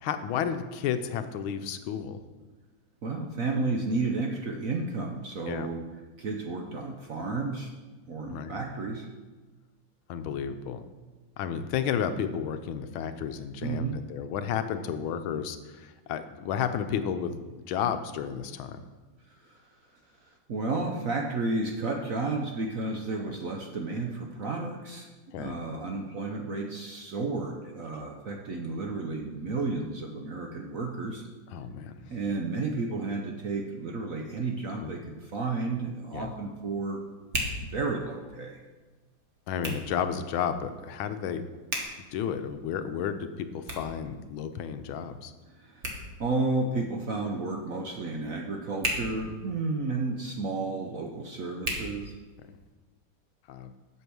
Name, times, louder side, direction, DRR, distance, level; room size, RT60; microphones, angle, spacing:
voice 1, 0.0-2.2 5.5-5.7 8.3-8.5 10.1-10.8 11.4-18.8 25.3-25.6 31.5-32.2 34.8-34.9 36.1-36.3 39.5-41.4 42.1-45.3 49.2-49.3 53.5-53.7, left 8 dB, 80° left, 9 dB, 1.5 m, -32 dB
voice 2, 3.0-5.9 6.2-7.7 8.1-9.1 13.6-14.0 19.4-19.6 20.2-25.1 25.4-31.2 32.1-37.0 37.6-38.6 45.5-52.2, right 3 dB, 60° right, 2 dB, 0.9 m, -32 dB
Hands, 35.1-52.7, right 1 dB, 35° right, 1.5 m, -41 dB
8.4 x 7.1 x 6.1 m, 1.3 s
omnidirectional pair, 2.3 m